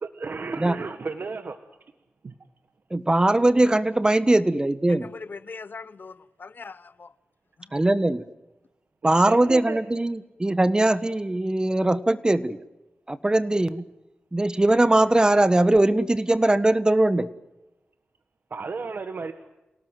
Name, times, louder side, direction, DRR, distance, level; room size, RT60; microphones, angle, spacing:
voice 1, 0.0-1.6 2.2-2.3 9.0-9.8 18.5-19.3, right 4 dB, 60° right, 1.6 m, -33 dB
voice 2, 2.9-5.1 7.7-8.2 9.0-12.6 13.1-13.8 14.3-17.3, right 1 dB, 20° right, 1.4 m, -21 dB
voice 3, 4.9-7.1 7.6-7.7, left 4 dB, 60° left, 1.0 m, -41 dB
28.5 x 18.5 x 9.3 m
wide cardioid pair, 80°, 4 cm